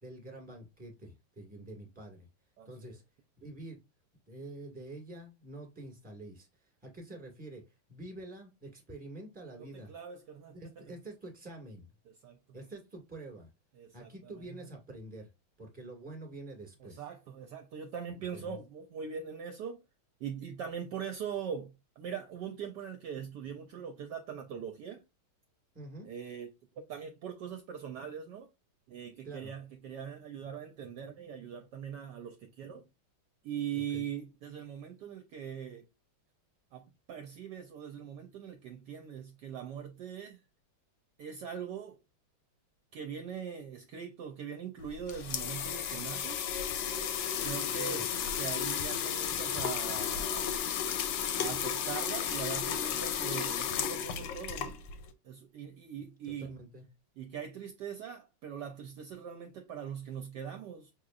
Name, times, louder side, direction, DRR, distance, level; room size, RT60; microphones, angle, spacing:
voice 1, 0.0-2.3 2.6-3.0 3.4-3.8 4.3-7.6 7.9-9.9 10.5-11.9 12.5-13.5 13.9-15.3 15.6-17.0 18.1-18.6 25.7-26.1 29.2-29.5 33.7-34.1 47.8-48.0 56.2-56.8, right 2 dB, 5° right, 1.4 m, -47 dB
voice 2, 2.6-3.0 9.9-11.0 12.2-12.4 13.8-14.6 16.8-19.8 20.2-25.0 26.0-28.5 28.9-32.8 33.4-35.9 36.7-40.4 41.2-42.0 42.9-46.5 47.4-48.1 48.4-50.5 51.4-54.8 55.2-56.6 57.2-60.9, right 8 dB, 70° right, 1.1 m, -41 dB
sound 1, 44.8-55.1, left 8 dB, 75° left, 1.3 m, -33 dB
5.8 x 2.9 x 2.4 m
omnidirectional pair, 2.2 m